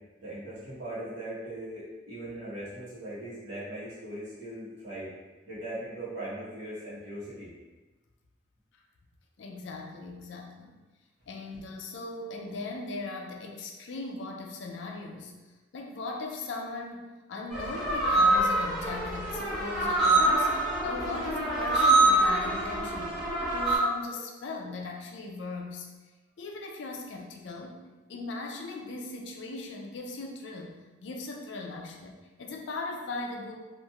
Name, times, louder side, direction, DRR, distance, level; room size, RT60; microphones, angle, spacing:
voice 1, 0.2-5.1 5.5-7.5 23.8-23.9, right 1 dB, 80° right, -11 dB, 1.1 m, -39 dB
voice 2, 9.4-10.8 11.3-15.3 15.7-20.5 20.8-23.1 23.5-25.9 26.4-27.8 28.1-30.7 31.0-33.5, left 3 dB, 70° left, 1 dB, 0.4 m, -38 dB
sound 1, 17.5-23.8, right 2 dB, ahead, 0.6 m, -25 dB
2.9 x 2.5 x 2.3 m, 1.2 s
head